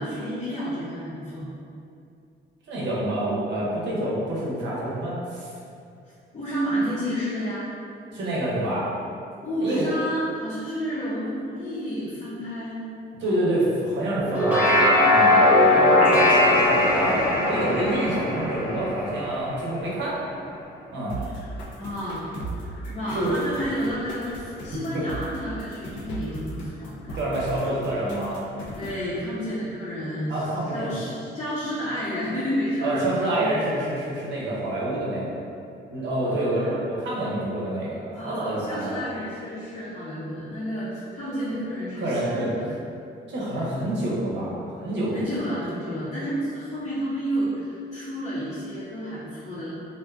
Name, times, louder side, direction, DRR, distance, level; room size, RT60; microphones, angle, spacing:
voice 1, 0.0-1.5 6.3-7.6 9.4-12.9 15.7-16.0 21.8-22.3 22.8-27.2 28.7-30.3 30.7-33.5 36.2-36.8 38.1-42.8 43.5-43.7 45.1-49.7, equal, 30° left, -12 dB, 0.7 m, -30 dB
voice 2, 2.7-5.5 8.1-8.9 9.6-9.9 13.2-20.2 20.9-21.2 23.1-23.4 24.9-25.0 27.2-28.4 30.3-30.9 32.8-35.4 35.9-39.0 41.9-42.5 43.3-45.2, right 1 dB, 65° right, -6 dB, 0.8 m, -27 dB
sound 1, 14.2-19.7, left 1 dB, 5° right, 0.7 m, -20 dB
sound 2, 21.1-29.1, right 1 dB, 70° left, 0.5 m, -38 dB
2.5 x 2.3 x 2.3 m, 2.5 s
cardioid pair, 90°, 20 cm